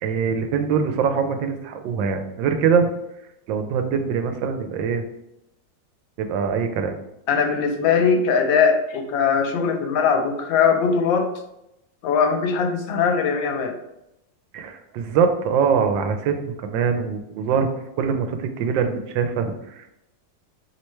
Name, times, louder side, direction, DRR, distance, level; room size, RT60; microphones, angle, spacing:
voice 1, 0.0-2.9 3.5-5.0 6.2-6.9 14.5-17.7 18.0-19.9, right 6 dB, 85° right, 6 dB, 1.3 m, -23 dB
voice 2, 7.3-11.3 12.0-13.7, left 6 dB, 85° left, 5 dB, 1.3 m, -20 dB
3.2 x 3.1 x 4.4 m, 0.86 s
omnidirectional pair, 2.0 m